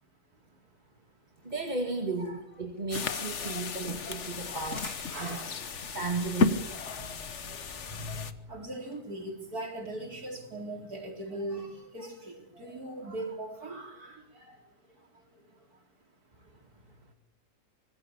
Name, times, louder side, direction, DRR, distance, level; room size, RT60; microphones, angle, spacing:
sound 1, 1.4-11.0, left 3 dB, 70° left, 3.8 m, -52 dB
voice 1, 1.4-4.9 5.2-5.4 5.9-6.7 7.0-7.2 7.4-7.5 7.9-8.3, right 3 dB, 25° right, 4 dB, 1.9 m, -35 dB
voice 2, 2.2-2.7 3.4-3.8 4.3-4.7 5.1-5.5 7.5-15.8 16.4-16.9, right 1 dB, 65° right, 2 dB, 4.7 m, -41 dB
sound 2, 2.9-8.3, left 4 dB, 50° left, 1.4 m, -33 dB
25.0 x 20.0 x 7.2 m, 0.78 s
omnidirectional pair, 1.7 m